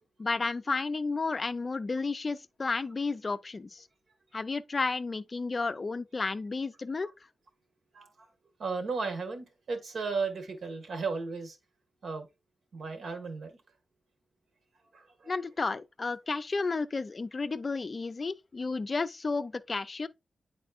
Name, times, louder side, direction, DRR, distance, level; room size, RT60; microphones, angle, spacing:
voice 1, 0.2-3.8 4.3-7.1 15.3-20.1, left 3 dB, 35° left, 0.4 m, -32 dB
voice 2, 7.9-8.3 8.6-11.6 12.0-12.3 12.7-13.6 14.9-15.3, right 4 dB, 75° right, 1.5 m, -35 dB
9.1 x 4.2 x 2.4 m
wide cardioid pair, 175°, 0 cm